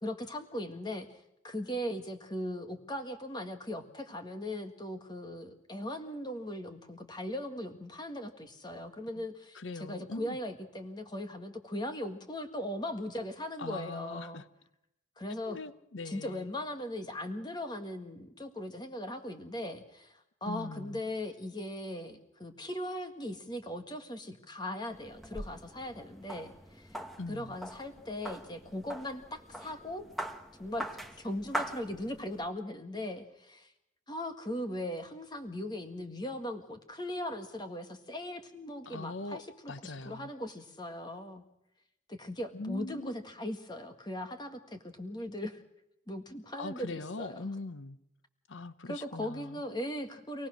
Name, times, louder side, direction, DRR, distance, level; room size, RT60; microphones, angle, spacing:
voice 1, 0.0-1.1 1.4-14.4 15.2-15.6 16.1-20.1 20.4-27.0 27.3-30.0 30.6-33.7 34.1-41.4 42.1-45.6 46.1-47.5 48.8-50.5, left 1 dB, 20° left, 1.7 m, -39 dB
voice 2, 9.5-10.4 13.6-14.5 15.4-16.5 20.5-21.0 27.2-27.6 38.9-39.4 39.7-40.3 42.5-43.1 46.6-48.0 48.5-49.6, left 3 dB, 85° left, 0.9 m, -41 dB
sound 1, 24.9-32.5, right 1 dB, ahead, 1.3 m, -42 dB
26.5 x 18.0 x 6.4 m
head